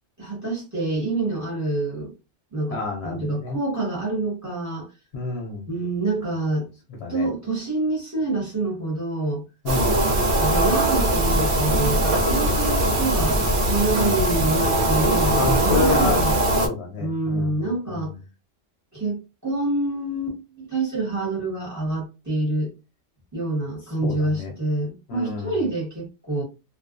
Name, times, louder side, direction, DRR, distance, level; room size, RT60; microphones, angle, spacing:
voice 1, 0.2-2.1 2.5-4.9 5.7-6.7 7.1-9.4 10.4-16.3 17.0-18.1 18.9-22.7 23.3-26.4, right 2 dB, 15° right, -3 dB, 1.1 m, -27 dB
voice 2, 2.7-3.6 5.1-5.7 7.0-7.3 9.6-10.1 13.9-14.2 15.3-16.2 16.6-18.1 24.0-24.5 25.1-25.6, left 3 dB, 65° left, 1 dB, 0.8 m, -29 dB
sound 1, 9.6-16.7, right 1 dB, 75° right, 1.0 m, -21 dB
2.4 x 2.2 x 2.4 m, 0.29 s
omnidirectional pair, 1.3 m